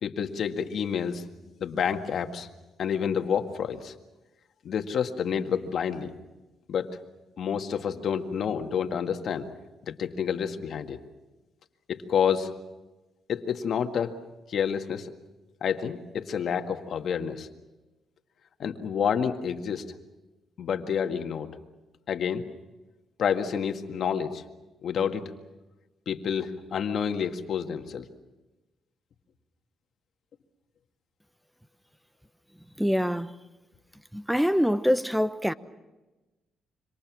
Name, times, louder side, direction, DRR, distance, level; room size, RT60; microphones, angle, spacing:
voice 1, 0.0-1.2 1.6-2.5 2.8-3.9 4.6-6.1 6.7-7.0 7.4-9.5 9.9-11.0 11.9-12.5 13.3-14.1 14.5-15.1 15.6-17.5 18.6-19.9 20.6-21.5 22.1-22.4 23.2-24.4 24.8-25.2 26.1-28.1, left 7 dB, 60° left, 1.9 m, -29 dB
voice 2, 32.8-33.3 34.1-35.5, equal, ahead, 1.0 m, -24 dB
27.0 x 25.5 x 6.3 m
cardioid pair, 90°, 0 cm